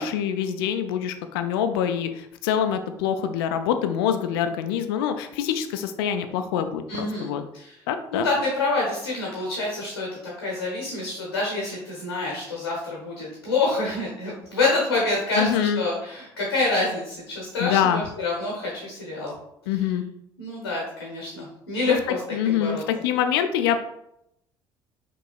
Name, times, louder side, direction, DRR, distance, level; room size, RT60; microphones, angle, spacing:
voice 1, 0.0-7.4 7.9-8.3 15.4-15.8 17.6-18.0 19.7-20.0 21.9-22.0 22.3-23.8, left 9 dB, 70° left, 8 dB, 0.4 m, -25 dB
voice 2, 6.9-7.8 8.1-19.3 20.4-22.8, left 3 dB, 90° left, -3 dB, 0.9 m, -27 dB
5.3 x 3.0 x 2.4 m, 0.78 s
figure-of-eight pair, 55°, 13 cm